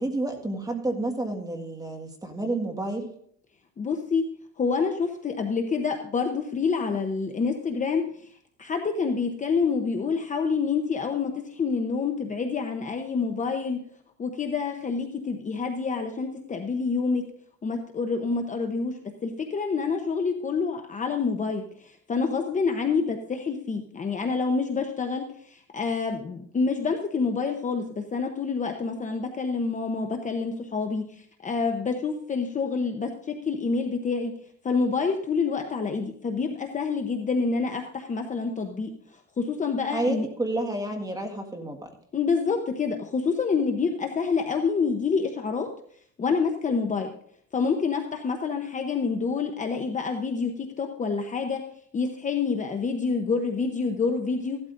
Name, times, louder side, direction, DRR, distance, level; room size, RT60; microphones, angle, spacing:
voice 1, 0.0-3.1 39.9-41.9, right 2 dB, 10° right, 3 dB, 1.7 m, -30 dB
voice 2, 3.8-4.2 4.6-8.3 8.6-13.8 14.2-17.2 17.6-34.3 34.6-40.3 42.1-45.7 46.2-47.1 47.5-51.6 51.9-54.6, left 5 dB, 25° left, 4 dB, 0.8 m, -27 dB
16.0 x 12.0 x 2.6 m, 0.64 s
cardioid pair, 130°, 33 cm